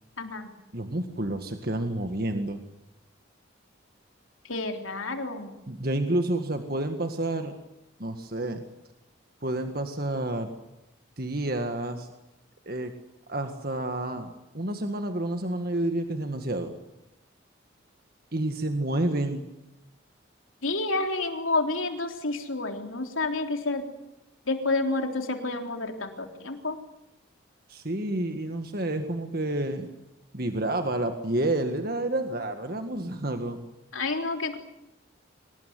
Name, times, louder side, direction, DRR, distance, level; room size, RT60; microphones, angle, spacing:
voice 1, 0.2-0.5 4.5-5.5 20.6-23.8 24.5-26.8 33.9-34.6, left 3 dB, 90° left, 4 dB, 3.7 m, -29 dB
voice 2, 0.7-2.6 5.7-7.5 8.0-8.6 9.4-10.5 11.2-12.1 12.7-12.9 13.3-16.7 18.3-19.4 27.7-29.9 30.3-33.6, right 1 dB, 50° right, 6 dB, 1.8 m, -29 dB
25.0 x 19.5 x 9.6 m, 0.90 s
head